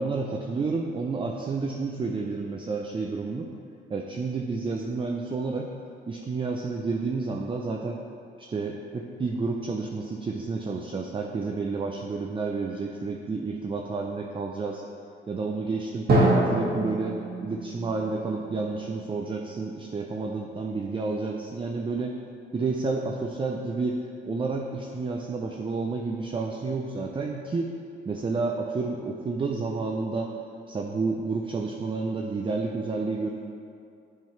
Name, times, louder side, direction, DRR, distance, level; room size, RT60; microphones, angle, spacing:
voice 1, 0.0-3.5 3.9-5.7 6.1-8.0 8.4-14.8 15.3-16.1 16.5-22.1 22.5-27.8 28.1-30.3 30.7-33.3, right 3 dB, 25° right, 1 dB, 0.5 m, -30 dB
Drum, 16.1-19.8, right 1 dB, 55° right, 1.6 m, -26 dB
9.2 x 3.8 x 4.4 m, 2.5 s
cardioid pair, 90°, 20 cm